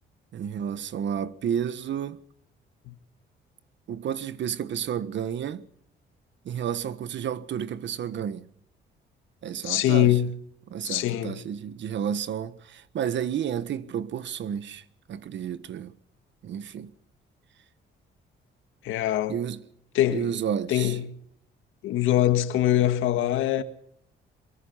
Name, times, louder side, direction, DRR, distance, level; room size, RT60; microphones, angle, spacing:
voice 1, 0.3-2.2 3.9-5.7 6.4-8.4 9.4-10.2 10.7-15.9 16.4-16.9 19.3-19.6 20.1-21.0, right 8 dB, 65° right, 1.5 m, -31 dB
voice 2, 9.6-10.4 10.8-11.4 18.8-19.4 19.9-20.3 20.7-21.2 21.8-23.6, left 12 dB, 90° left, 1.9 m, -23 dB
23.5 x 22.5 x 5.8 m
cardioid pair, 90°, 20 cm